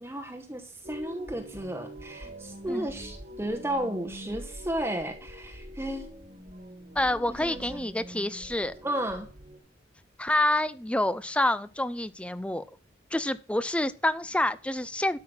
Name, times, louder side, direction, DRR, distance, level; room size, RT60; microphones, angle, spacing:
voice 1, 0.0-6.1 7.3-7.8 8.8-9.3, right 1 dB, 15° right, 1.0 m, -33 dB
sound 1, 0.8-9.6, equal, 40° right, 1.6 m, -44 dB
voice 2, 7.0-8.7 10.2-12.7 13.1-15.2, left 1 dB, 5° left, 0.5 m, -27 dB
12.5 x 5.7 x 6.0 m
head